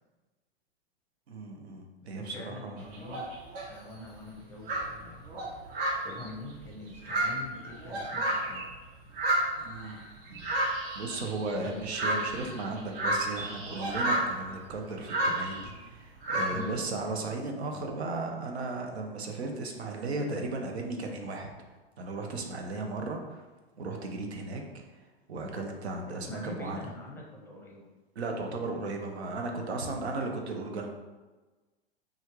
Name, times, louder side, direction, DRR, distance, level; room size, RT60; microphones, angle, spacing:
voice 1, 1.3-2.9 9.6-10.0 10.9-21.5 22.0-23.4 23.8-24.6 24.9-25.0 25.3-26.9 28.2-30.9, right 3 dB, 90° right, 3 dB, 0.6 m, -35 dB
voice 2, 2.1-3.3 3.7-5.2 6.0-8.6 11.6-11.7 16.5-16.8 26.1-27.9, left 2 dB, 10° left, -2 dB, 0.5 m, -44 dB
sound 1, 2.8-3.7 4.3-4.4 4.6-8.8 9.1-15.8 16.2-16.8, right 1 dB, 65° right, 1.0 m, -31 dB
3.1 x 2.4 x 2.9 m, 1.2 s
hypercardioid pair, 110°, 31 cm